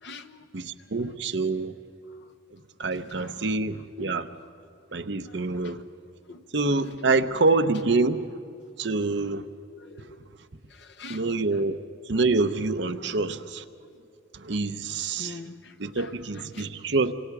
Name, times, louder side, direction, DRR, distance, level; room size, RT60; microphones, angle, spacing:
voice 1, 0.0-0.4 3.2-3.3 6.3-6.4 9.8-10.2 10.7-11.2 15.2-16.1 16.4-16.7, left 3 dB, 60° left, 5 dB, 1.1 m, -44 dB
voice 2, 0.5-1.7 2.5-4.3 4.9-5.8 6.5-8.3 8.8-9.5 10.0-10.1 11.1-11.8 12.0-13.6 14.3-15.4 15.8-17.1, right 3 dB, 65° right, 9 dB, 0.8 m, -26 dB
27.5 x 24.5 x 4.8 m, 2.4 s
head